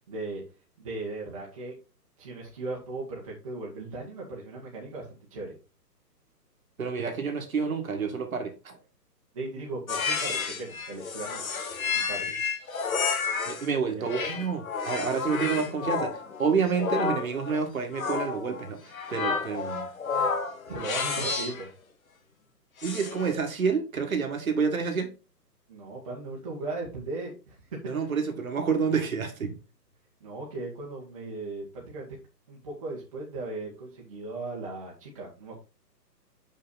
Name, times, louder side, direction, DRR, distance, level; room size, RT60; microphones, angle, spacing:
voice 1, 0.1-0.4 0.8-1.7 2.2-5.0 5.3-5.6 9.3-11.4 11.9-12.3 13.9-14.0 15.4-15.6 19.5-19.7 20.1-20.3 20.7-21.7 25.7-27.8 30.2-32.1 32.5-35.6, right 2 dB, 20° right, 1.5 m, -37 dB
voice 2, 6.8-8.8 13.5-19.9 22.8-25.1 27.9-29.5, right 5 dB, 55° right, 1.9 m, -29 dB
sound 1, 9.9-13.7 14.1-21.7 22.8-23.4, left 5 dB, 55° left, 1.4 m, -31 dB
6.4 x 5.9 x 4.0 m
hypercardioid pair, 175°, 49 cm